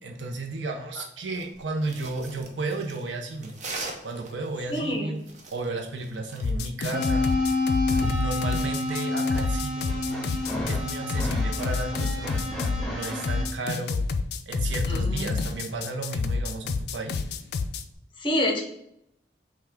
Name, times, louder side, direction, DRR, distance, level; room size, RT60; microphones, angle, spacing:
voice 1, 0.0-3.6 4.0-5.2 5.5-7.3 7.9-10.3 10.7-14.0 14.5-17.2, right 2 dB, 90° right, 2 dB, 0.6 m, -33 dB
sound 1, 1.3-6.5, right 3 dB, 40° right, 0.7 m, -41 dB
voice 2, 4.7-5.1 14.9-15.3 18.2-18.6, left 1 dB, 30° left, 1 dB, 0.8 m, -27 dB
sound 2, 6.4-17.8, left 4 dB, 60° left, 0.3 m, -28 dB
sound 3, 6.9-13.4, left 2 dB, ahead, 1.4 m, -29 dB
5.7 x 2.3 x 3.5 m, 0.75 s
head